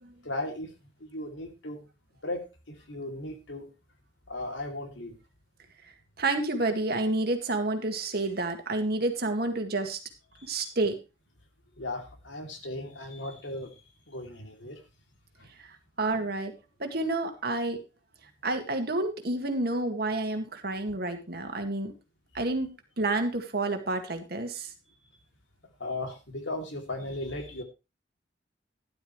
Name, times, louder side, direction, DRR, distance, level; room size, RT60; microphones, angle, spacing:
voice 1, 0.2-0.7 1.0-1.9 2.2-3.7 4.3-5.2 10.3-10.6 11.8-13.8 14.1-14.8 15.4-15.5 25.8-27.6, left 2 dB, 90° left, 4 dB, 2.9 m, -37 dB
voice 2, 5.8-10.0 10.4-11.0 15.6-15.7 16.0-16.5 16.8-17.8 18.4-21.9 22.3-22.7 23.0-24.7, right 2 dB, 55° right, 6 dB, 2.0 m, -29 dB
12.5 x 12.0 x 3.2 m, 0.27 s
head